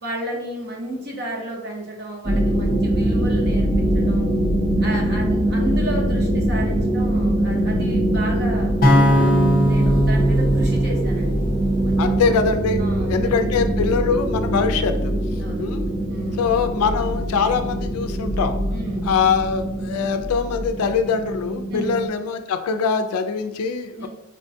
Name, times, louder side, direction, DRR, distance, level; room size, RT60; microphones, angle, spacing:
voice 1, 0.0-4.3 4.8-8.7 9.0-11.5 11.8-12.2 12.8-13.5 13.8-14.1 15.4-15.7 16.1-16.4 18.7-19.0 21.7-21.9 24.0-24.1, right 1 dB, 50° right, -1 dB, 0.8 m, -32 dB
sound 1, 2.2-22.1, right 1 dB, 15° right, 0.5 m, -23 dB
sound 2, 8.8-13.0, equal, 40° left, 0.8 m, -20 dB
voice 2, 12.0-15.1 15.6-15.9 16.4-18.5 19.0-24.1, left 5 dB, 80° left, 8 dB, 0.3 m, -23 dB
4.3 x 2.2 x 2.6 m, 0.90 s
head